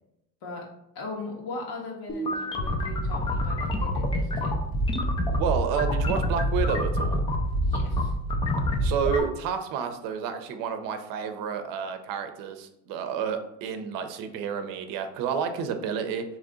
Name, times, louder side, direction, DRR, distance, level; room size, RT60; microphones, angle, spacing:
voice 1, 0.9-4.6 7.6-8.1, left 3 dB, 75° left, -1 dB, 1.5 m, -39 dB
sound 1, 2.1-9.2, equal, 15° left, 0.4 m, -26 dB
voice 2, 5.4-7.2 8.8-16.2, right 7 dB, 70° right, 7 dB, 0.6 m, -30 dB
3.8 x 3.1 x 3.6 m, 0.82 s
cardioid pair, 150°, 35 cm